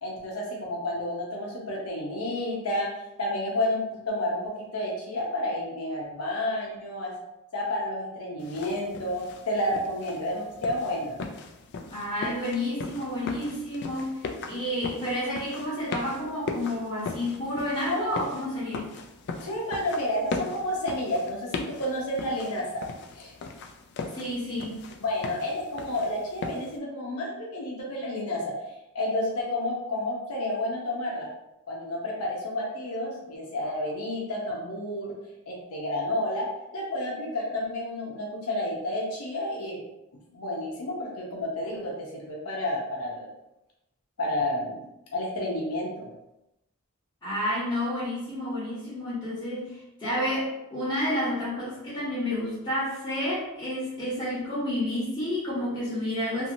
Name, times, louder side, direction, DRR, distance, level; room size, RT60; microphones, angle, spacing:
voice 1, 0.0-2.9 3.2-7.1 7.5-11.2 17.9-18.2 19.4-22.9 23.2-23.3 25.0-28.6 28.9-31.3 31.7-35.1 35.5-39.8 40.3-43.3 44.2-44.8 45.1-46.1, left 1 dB, 85° left, -2 dB, 0.7 m, -30 dB
sound 1, 8.4-26.8, left 4 dB, 50° left, 0.3 m, -39 dB
voice 2, 11.9-14.1 14.4-18.8 24.1-24.7 47.2-56.5, left 1 dB, 20° left, -11 dB, 0.9 m, -30 dB
2.8 x 2.6 x 2.6 m, 0.89 s
head